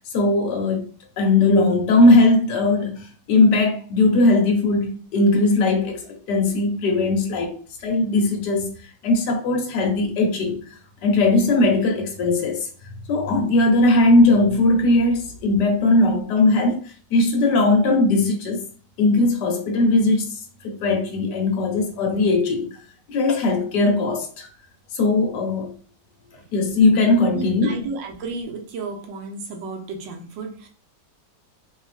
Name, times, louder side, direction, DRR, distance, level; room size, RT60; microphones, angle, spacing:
voice 1, 0.1-0.9 1.2-6.0 6.3-7.5 7.8-8.7 9.0-10.7 11.0-12.7 13.1-16.8 17.1-18.6 19.0-20.4 20.6-22.8 23.1-24.5 24.9-25.7 26.5-27.8, left 2 dB, 70° left, 1.5 m, -19 dB
voice 2, 27.3-30.7, right 3 dB, 85° right, 1.5 m, -33 dB
4.2 x 2.7 x 3.4 m
omnidirectional pair, 1.9 m